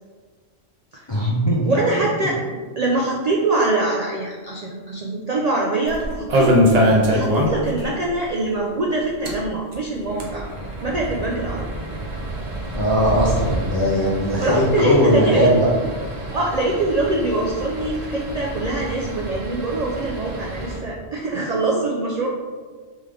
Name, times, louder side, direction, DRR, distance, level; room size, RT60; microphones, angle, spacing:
voice 1, 1.1-1.6 12.8-15.7, equal, 45° left, -6 dB, 0.3 m, -19 dB
voice 2, 1.6-2.4 2.8-10.5 10.8-11.7 14.4-15.5 16.3-22.3, right 2 dB, 90° right, -2 dB, 0.3 m, -24 dB
sound 1, 5.9-7.8 8.1-8.2 8.5-8.6 9.1-20.8, equal, 45° right, 0.6 m, -25 dB
3.5 x 3.2 x 3.3 m, 1.5 s
omnidirectional pair, 1.3 m